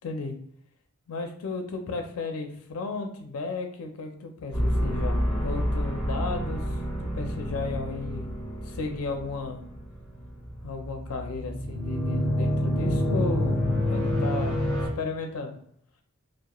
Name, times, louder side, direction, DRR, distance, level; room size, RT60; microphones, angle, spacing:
voice 1, 0.0-0.3 1.1-6.6 7.0-8.4 8.6-9.6 10.6-13.6 13.9-14.6 15.0-15.6, left 3 dB, 80° left, 4 dB, 0.4 m, -34 dB
sound 1, 4.5-14.9, equal, 5° left, 1.1 m, -28 dB
2.3 x 2.0 x 2.9 m, 0.69 s
head